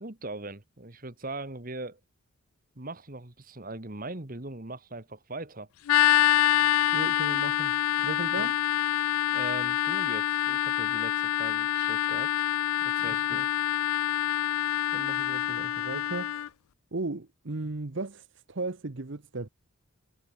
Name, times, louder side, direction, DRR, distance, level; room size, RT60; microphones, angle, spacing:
voice 1, 0.0-2.0 2.8-5.7 8.0-8.1 8.4-8.5 8.9-12.5 12.8-13.4, right 2 dB, 40° right, 1.8 m, -40 dB
sound 1, 5.9-16.5, left 12 dB, 85° left, 0.3 m, -26 dB
voice 2, 6.9-7.8 8.0-8.6 13.0-13.5 14.9-16.5 16.9-19.5, right 3 dB, 55° right, 1.0 m, -36 dB
Trumpet, 7.5-12.6, left 5 dB, 30° left, 4.3 m, -66 dB
head